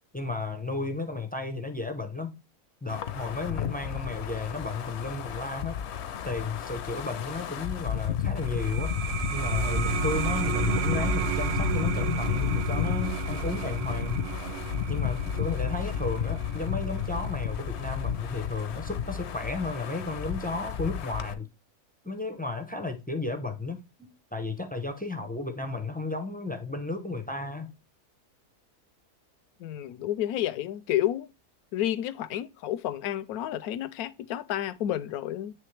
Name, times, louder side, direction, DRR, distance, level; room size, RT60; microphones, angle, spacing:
voice 1, 0.1-2.3 2.8-5.8 6.2-8.9 9.3-14.2 14.9-21.5 22.0-27.7, left 3 dB, 15° left, 0.3 m, -33 dB
Wind, 2.9-21.3, left 9 dB, 60° left, 0.8 m, -32 dB
sound 1, 8.3-19.5, right 9 dB, 70° right, 0.6 m, -33 dB
voice 2, 29.6-31.3 31.7-35.5, left 12 dB, 80° left, 1.0 m, -30 dB
9.3 x 3.3 x 3.2 m
omnidirectional pair, 1.6 m